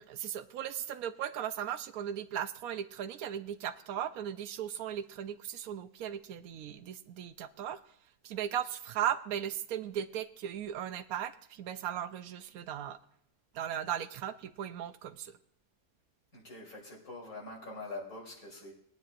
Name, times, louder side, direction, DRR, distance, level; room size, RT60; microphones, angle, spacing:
voice 1, 0.0-7.8 8.2-13.0 13.5-15.4, right 10 dB, 80° right, 11 dB, 1.1 m, -37 dB
voice 2, 16.3-18.7, left 2 dB, 80° left, -3 dB, 3.8 m, -44 dB
20.5 x 9.4 x 2.5 m, 0.69 s
omnidirectional pair, 1.5 m